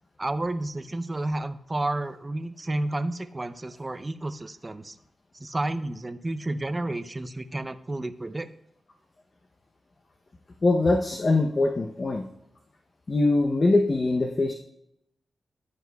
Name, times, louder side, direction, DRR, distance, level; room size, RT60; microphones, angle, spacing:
voice 1, 0.2-4.9 5.3-8.5, right 2 dB, 20° right, 10 dB, 0.5 m, -31 dB
voice 2, 10.6-12.2 13.1-14.5, left 2 dB, 35° left, 4 dB, 0.7 m, -22 dB
14.0 x 10.0 x 2.3 m, 0.79 s
wide cardioid pair, 115°, 0 cm